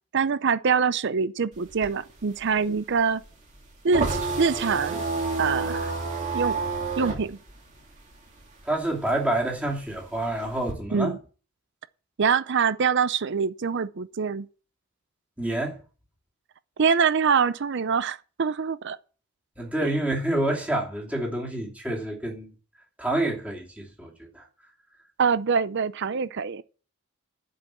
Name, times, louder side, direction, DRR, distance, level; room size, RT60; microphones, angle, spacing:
voice 1, 0.1-3.2 3.8-5.0 5.4-5.9 6.3-6.6 7.0-7.4 10.9-11.2 12.2-14.5 16.8-19.0 19.8-19.9 25.2-26.6, right 5 dB, 50° right, 0.5 m, -24 dB
sound 1, 1.5-8.6 9.0-10.7, right 3 dB, 35° right, 2.7 m, -30 dB
voice 2, 8.7-11.1 15.4-15.8 19.6-22.5 23.0-24.4, right 1 dB, 5° right, 2.7 m, -28 dB
11.0 x 5.4 x 8.3 m
head